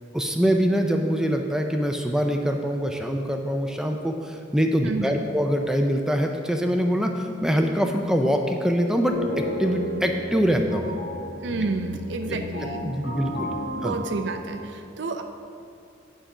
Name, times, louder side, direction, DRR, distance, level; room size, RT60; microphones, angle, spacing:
voice 1, 0.1-10.9 12.8-13.5 13.8-14.0, equal, 5° right, 3 dB, 0.4 m, -24 dB
voice 2, 4.8-5.2 11.4-12.9 13.7-15.2, right 3 dB, 65° right, 6 dB, 0.5 m, -30 dB
sound 1, 9.1-14.7, equal, 90° left, 2.2 m, -33 dB
7.9 x 5.0 x 6.0 m, 2.5 s
head